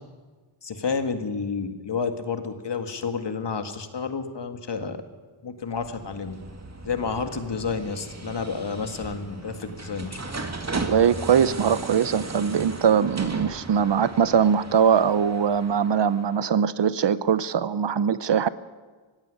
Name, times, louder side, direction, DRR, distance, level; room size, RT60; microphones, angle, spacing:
voice 1, 0.6-5.0 5.4-6.3 6.8-10.2, left 5 dB, 55° left, 8 dB, 2.1 m, -30 dB
sound 1, 5.7-16.4, right 3 dB, 30° right, 2.4 m, -37 dB
voice 2, 10.7-18.5, right 7 dB, 60° right, 16 dB, 0.9 m, -21 dB
16.5 x 15.5 x 9.9 m, 1.4 s
cardioid pair, 70°, 50 cm